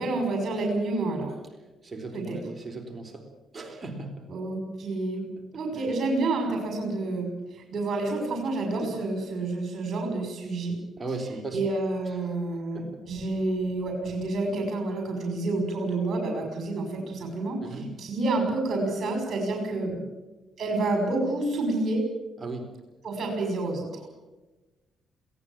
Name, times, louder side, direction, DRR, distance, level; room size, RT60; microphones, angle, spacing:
voice 1, 0.0-1.3 2.1-2.4 4.3-5.3 5.5-10.8 11.5-19.9 20.6-22.0 23.0-24.0, right 2 dB, 50° right, 3 dB, 6.2 m, -29 dB
voice 2, 1.8-3.3 3.5-4.3 5.8-5.9 8.8-9.0 11.0-11.7 12.7-13.1 17.6-17.9 19.9-20.1 22.4-22.7, right 2 dB, 25° right, 4 dB, 4.0 m, -37 dB
22.0 x 17.5 x 7.4 m, 1.1 s
cardioid pair, 90°, 0 cm